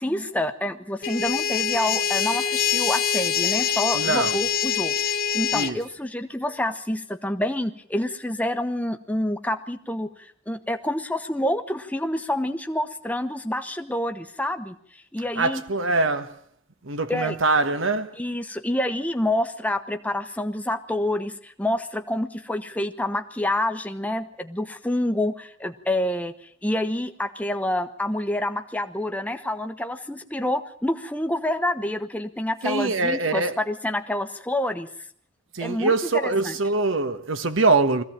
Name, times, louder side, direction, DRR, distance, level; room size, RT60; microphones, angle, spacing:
voice 1, 0.0-14.8 15.1-15.6 17.1-17.4 18.2-26.3 26.6-34.9 35.6-36.0 36.2-36.5, left 1 dB, 5° left, 1.0 m, -27 dB
sound 1, 1.0-5.7, left 8 dB, 45° left, 1.1 m, -24 dB
voice 2, 3.9-4.4 5.5-5.8 15.3-16.4 16.8-18.2 32.6-33.6 35.5-38.0, right 3 dB, 75° right, 1.4 m, -23 dB
22.0 x 15.5 x 8.8 m
head